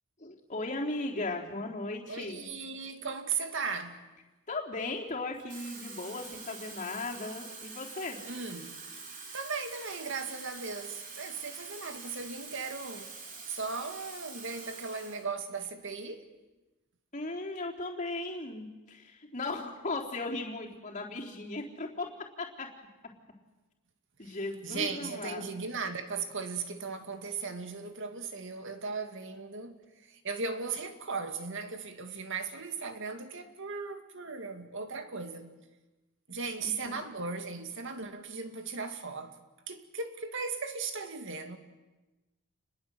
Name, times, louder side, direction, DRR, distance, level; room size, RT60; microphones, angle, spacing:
voice 1, 0.2-2.4 4.5-8.2 17.1-22.1 22.4-22.7 24.2-25.6 36.6-37.0, left 2 dB, 35° left, 3.8 m, -37 dB
voice 2, 2.1-4.0 8.2-8.8 9.3-13.1 13.5-16.2 24.2-24.3 24.6-29.8 30.1-35.5 36.3-39.3 39.7-41.6, right 4 dB, 60° right, 2.3 m, -37 dB
Water tap faucet / Fill (with liquid), 5.3-15.3 15.6-15.9, right 4 dB, 35° right, 4.2 m, -45 dB
29.0 x 21.0 x 8.0 m
head